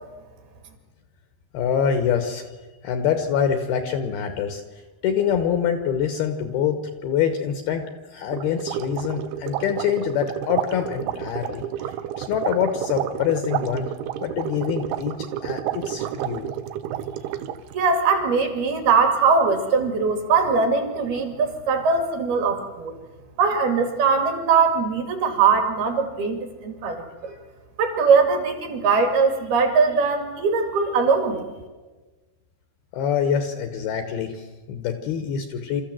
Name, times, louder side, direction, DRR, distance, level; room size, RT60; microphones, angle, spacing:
voice 1, 1.5-2.5 2.8-13.9 14.2-15.2 15.4-16.5 32.9-35.8, left 8 dB, 70° left, 7 dB, 2.5 m, -25 dB
sound 1, 8.3-17.7, right 11 dB, 80° right, 3.4 m, -30 dB
voice 2, 17.7-22.9 23.4-27.3 27.8-31.5, right 5 dB, 55° right, 6 dB, 3.7 m, -21 dB
28.5 x 14.0 x 7.5 m, 1.3 s
omnidirectional pair, 5.7 m